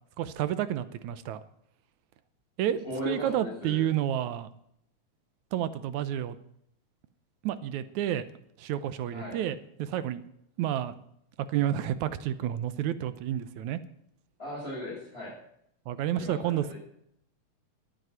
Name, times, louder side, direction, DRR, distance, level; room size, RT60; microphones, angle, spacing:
voice 1, 0.2-1.4 2.6-4.5 5.5-6.4 7.4-8.3 8.6-10.2 10.6-11.0 11.5-13.8 15.9-16.7, right 11 dB, 85° right, 14 dB, 2.2 m, -30 dB
voice 2, 2.8-3.8 9.1-9.4 14.4-15.3 16.2-16.7, left 1 dB, 20° left, -8 dB, 7.5 m, -37 dB
12.5 x 9.3 x 9.3 m, 0.73 s
omnidirectional pair, 3.4 m